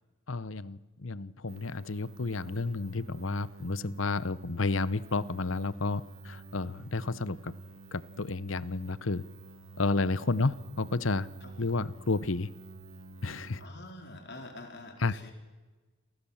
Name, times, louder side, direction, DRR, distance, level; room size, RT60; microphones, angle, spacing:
voice 1, 0.3-7.5 7.9-9.2 9.8-11.3 11.6-12.5 13.2-13.6 15.0-15.1, left 3 dB, 70° left, 17 dB, 0.9 m, -31 dB
sound 1, 1.5-13.7, right 2 dB, 80° right, 2.0 m, -49 dB
voice 2, 11.4-11.7 13.6-15.3, left 2 dB, 55° left, 4 dB, 4.3 m, -46 dB
29.5 x 23.5 x 7.3 m, 1.3 s
head